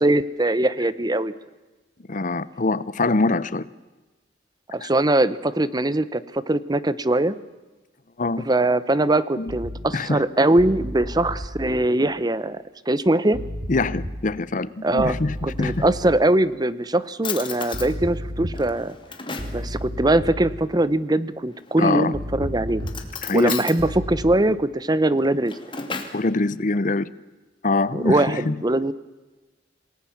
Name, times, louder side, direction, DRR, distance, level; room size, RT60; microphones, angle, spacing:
voice 1, 0.0-1.3 4.7-7.4 8.4-13.4 14.8-15.2 15.4-19.0 19.5-22.8 23.3-25.6 27.9-28.9, right 1 dB, 20° right, 16 dB, 0.8 m, -21 dB
voice 2, 2.1-3.7 4.8-4.9 8.2-8.5 9.4-9.6 9.9-10.2 13.7-15.8 21.8-22.1 23.2-23.6 26.1-27.1 27.6-28.6, left 3 dB, 45° left, 18 dB, 0.7 m, -24 dB
sound 1, 9.5-9.9 10.6-11.8 13.3-14.3 15.0-16.2 17.7-18.9 19.4-20.7 22.1-23.4 23.8-24.3, equal, 85° right, 2.8 m, -33 dB
Drawer open or close, 15.3-16.3 16.8-16.9 17.2-17.9 18.5-19.6 21.5-22.0 22.8-23.8 25.2-26.2, left 5 dB, 30° left, 2.4 m, -34 dB
27.5 x 18.5 x 7.3 m, 1.2 s
head